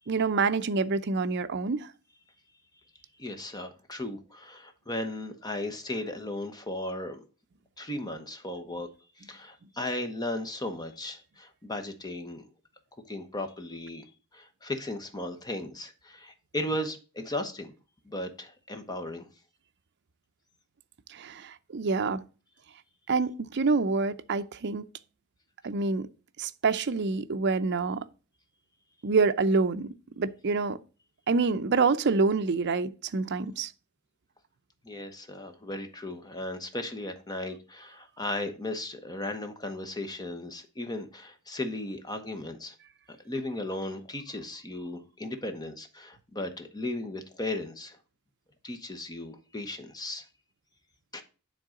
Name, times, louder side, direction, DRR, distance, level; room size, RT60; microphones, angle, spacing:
voice 1, 0.1-1.9 21.1-22.2 23.1-24.9 25.6-26.1 26.4-28.0 29.0-30.8 31.3-33.7, right 4 dB, 55° right, 0.5 m, -27 dB
voice 2, 3.2-7.2 7.8-8.9 9.2-12.5 13.1-17.7 18.0-19.3 34.8-42.7 43.1-48.0 48.6-50.2 51.1-51.2, left 1 dB, 20° left, 1.0 m, -36 dB
9.3 x 3.8 x 3.7 m
head